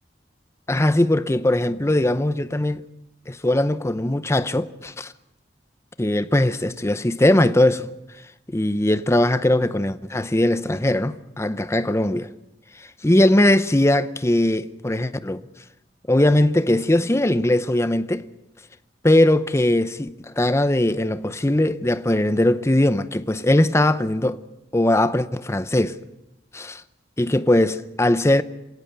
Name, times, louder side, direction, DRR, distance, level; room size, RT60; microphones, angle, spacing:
voice 1, 0.7-2.8 3.3-5.1 6.0-7.9 8.5-12.3 12.8-15.4 16.1-18.3 19.0-24.4 24.7-26.0 26.5-26.8 27.2-28.4, left 1 dB, 15° left, 0.7 m, -20 dB
26.5 x 17.5 x 6.8 m
head